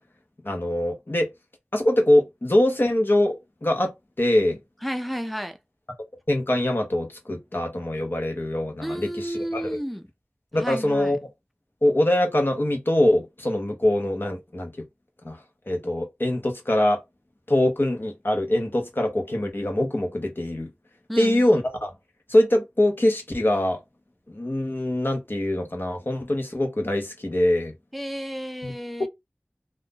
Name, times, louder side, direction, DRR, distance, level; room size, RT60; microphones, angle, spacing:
voice 1, 0.4-1.3 1.7-4.6 6.3-9.8 10.5-11.2 11.8-14.7 15.2-15.4 15.7-17.0 17.5-20.7 21.2-21.9 22.3-23.8 24.3-27.7 28.6-28.7, left 1 dB, 55° left, 1.0 m, -23 dB
voice 2, 4.8-5.6 8.8-10.1 10.6-11.2 21.1-21.5 27.9-29.1, equal, ahead, 0.6 m, -31 dB
2.6 x 2.5 x 3.8 m
wide cardioid pair, 45°, 4 cm